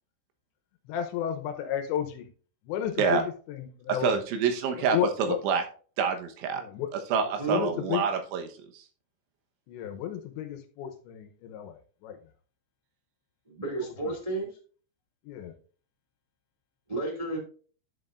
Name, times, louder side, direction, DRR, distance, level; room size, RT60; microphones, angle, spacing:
voice 1, 0.9-2.3 2.7-4.2 4.8-5.4 6.5-6.9 7.5-8.0 9.7-11.8 12.0-12.2 14.0-14.1 15.2-15.5, left 10 dB, 80° left, 7 dB, 3.0 m, -32 dB
voice 2, 3.9-5.6 6.0-6.6 7.1-8.5, right 6 dB, 85° right, 5 dB, 3.5 m, -27 dB
voice 3, 7.4-7.7 13.5-14.5 16.9-17.4, right 2 dB, 20° right, -2 dB, 1.0 m, -32 dB
10.5 x 7.7 x 2.5 m, 0.40 s
omnidirectional pair, 5.4 m